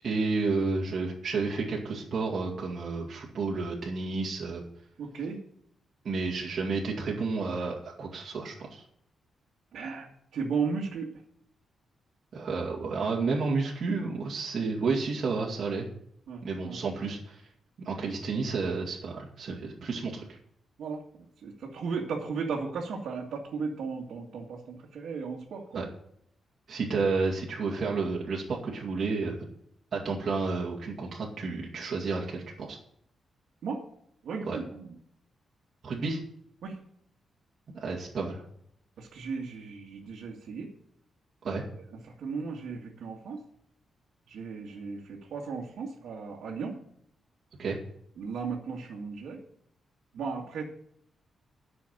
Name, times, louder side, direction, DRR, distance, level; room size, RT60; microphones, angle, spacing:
voice 1, 0.0-4.6 6.0-8.8 12.3-15.9 16.4-17.4 17.8-20.4 25.7-25.9 26.7-29.4 29.9-32.8 34.4-34.6 35.8-36.2 37.7-38.4 41.4-41.6 47.6-47.8, right 4 dB, 45° right, -3 dB, 2.3 m, -31 dB
voice 2, 5.0-5.4 9.7-10.1 10.3-11.1 16.3-16.8 18.0-18.1 20.8-25.8 33.6-33.8 34.2-34.9 36.6-36.8 39.0-40.7 41.4-41.6 42.2-43.4 44.3-46.8 48.2-49.4 50.1-50.6, right 5 dB, 75° right, -3 dB, 2.0 m, -35 dB
10.5 x 6.3 x 9.0 m, 0.71 s
wide cardioid pair, 150°, 0 cm